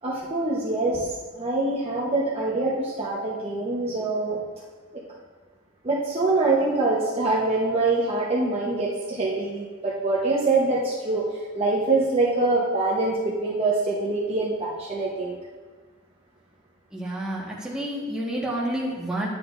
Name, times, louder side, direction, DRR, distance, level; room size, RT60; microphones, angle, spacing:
voice 1, 0.0-4.4 5.8-11.3 11.5-15.4, right 2 dB, 25° right, -5 dB, 1.0 m, -24 dB
voice 2, 16.9-19.3, right 1 dB, 5° right, -5 dB, 1.5 m, -29 dB
11.0 x 8.9 x 2.6 m, 1.4 s
head